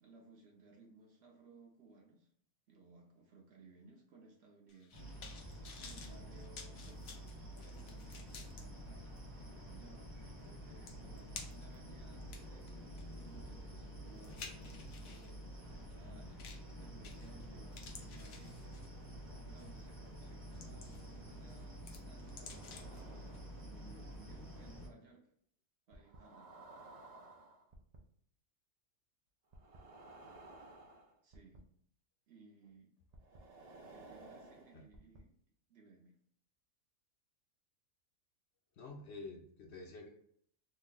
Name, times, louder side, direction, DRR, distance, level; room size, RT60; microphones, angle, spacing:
voice 1, 0.0-2.3 2.7-7.2 7.6-16.5 16.8-18.9 19.4-23.1 23.4-25.3 25.9-26.6 31.2-31.6 32.3-32.9 33.9-35.3 35.7-36.2, right 3 dB, 60° right, 0 dB, 0.8 m, -61 dB
sound 1, 4.7-8.6 9.2-9.3 10.4-10.5 10.9-11.8 12.2-15.3 16.4-16.7 17.0-17.4 17.7-19.0 19.6-19.8 20.3-21.2 21.5-23.0 23.3-23.4, left 5 dB, 90° left, 1.1 m, -53 dB
sound 2, 4.9-24.9, equal, 20° right, 0.7 m, -49 dB
sound 3, 20.5-20.8 22.1-23.6 24.1-24.4 25.9-28.0 29.5-31.6 33.1-35.2, right 2 dB, 80° right, 0.3 m, -56 dB
voice 2, 38.7-40.1, left 3 dB, 65° left, 1 dB, 0.7 m, -49 dB
3.1 x 2.1 x 3.7 m, 0.65 s
omnidirectional pair, 1.4 m